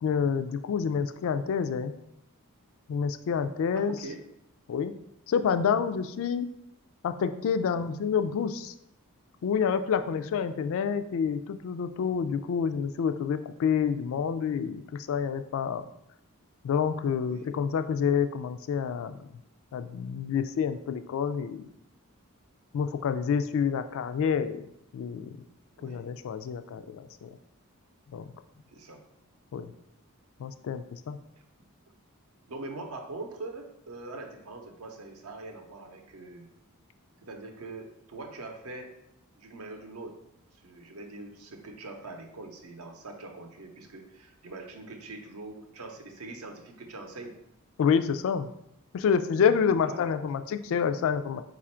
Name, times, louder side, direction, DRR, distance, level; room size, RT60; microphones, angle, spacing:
voice 1, 0.0-1.9 2.9-4.0 4.7-4.9 5.3-6.5 7.0-8.7 9.4-15.8 16.6-19.1 19.7-21.7 22.7-24.7 24.9-25.3 25.8-27.3 28.1-28.3 29.5-29.7 30.4-31.2 47.8-48.5 48.9-51.4, left 6 dB, 65° left, 10 dB, 0.3 m, -28 dB
voice 2, 3.7-4.2 17.2-17.5 25.8-26.0 28.7-29.0 32.5-36.5 37.2-38.9 39.4-40.2 40.6-47.3 49.8-50.0, right 2 dB, 70° right, 4 dB, 0.7 m, -43 dB
4.1 x 2.5 x 4.3 m, 0.80 s
head